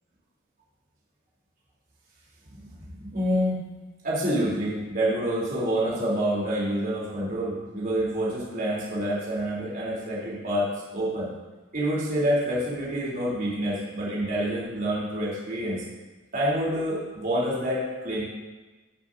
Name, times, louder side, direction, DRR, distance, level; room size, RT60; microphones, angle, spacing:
voice 1, 2.5-3.6 4.0-11.3 11.7-15.8 16.3-18.2, equal, 50° right, -6 dB, 3.3 m, -27 dB
16.5 x 7.4 x 2.7 m, 1.2 s
head